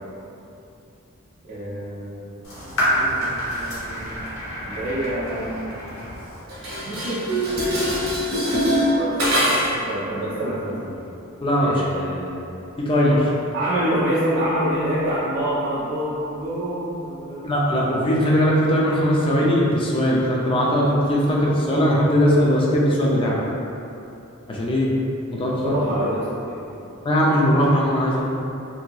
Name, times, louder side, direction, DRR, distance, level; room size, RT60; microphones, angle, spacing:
voice 1, 1.5-2.2 2.6-4.2 4.7-5.6 6.8-8.1 9.0-11.0 11.6-12.4 13.5-17.4 25.5-26.6, right 1 dB, 50° right, -11 dB, 0.5 m, -27 dB
sound 1, 2.4-6.4, equal, 70° left, 0.9 m, -27 dB
Dishes pots and pans, 6.5-9.9, equal, 65° right, 0.9 m, -23 dB
voice 2, 11.4-11.8 12.9-13.3 17.4-23.4 24.5-24.9 25.3-25.7 27.0-28.2, equal, 25° left, -4 dB, 0.4 m, -19 dB
2.8 x 2.7 x 2.3 m, 2.8 s
head